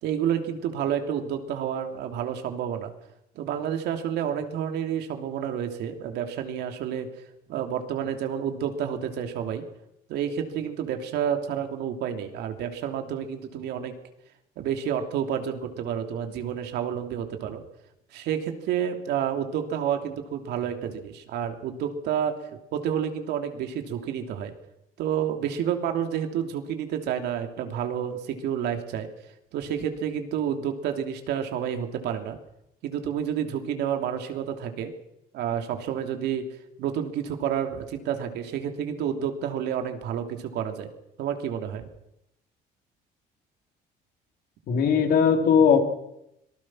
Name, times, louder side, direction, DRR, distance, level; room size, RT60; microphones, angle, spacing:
voice 1, 0.0-2.9 3.3-7.1 7.5-9.6 10.1-13.9 14.6-17.6 18.1-24.5 25.0-29.1 29.5-32.4 32.8-34.9 35.3-36.4 36.8-40.9 41.2-41.9, right 9 dB, 80° right, 5 dB, 3.0 m, -29 dB
voice 2, 44.7-45.8, left 6 dB, 65° left, 4 dB, 3.8 m, -19 dB
25.5 x 19.5 x 6.3 m, 0.82 s
cardioid pair, 110°, 17 cm